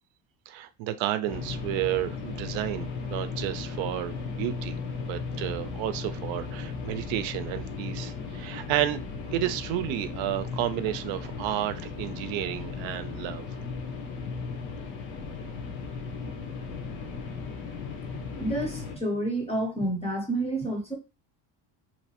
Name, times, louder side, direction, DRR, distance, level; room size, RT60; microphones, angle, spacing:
voice 1, 0.5-4.8 5.1-9.0 9.3-13.4, right 13 dB, 75° right, 0.5 m, -31 dB
sound 1, 1.3-19.0, left 4 dB, 75° left, 1.0 m, -36 dB
voice 2, 18.4-20.9, right 1 dB, 15° left, 0.6 m, -29 dB
3.1 x 2.9 x 2.8 m
cardioid pair, 155°, 46 cm